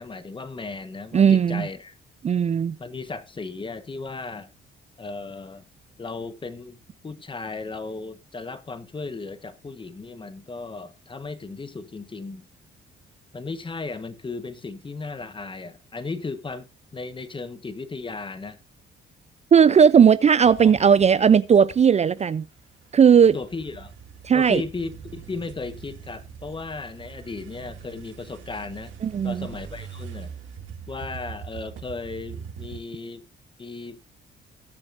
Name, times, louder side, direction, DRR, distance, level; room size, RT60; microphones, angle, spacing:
voice 1, 0.0-2.0 2.8-4.5 5.0-5.6 6.0-6.8 7.0-12.5 13.3-16.7 16.9-18.6 20.6-20.9 23.3-23.9 24.3-28.9 29.2-30.3 30.9-33.2 33.6-34.0, left 3 dB, 25° left, 1.1 m, -35 dB
voice 2, 1.1-1.6 2.2-2.8 19.5-22.4 22.9-23.4 24.2-24.6 29.0-29.5, right 7 dB, 35° right, 0.4 m, -16 dB
sound 1, 20.4-21.9 22.2-32.8, right 7 dB, 75° right, 2.3 m, -42 dB
19.5 x 7.0 x 2.6 m
cardioid pair, 90°, 20 cm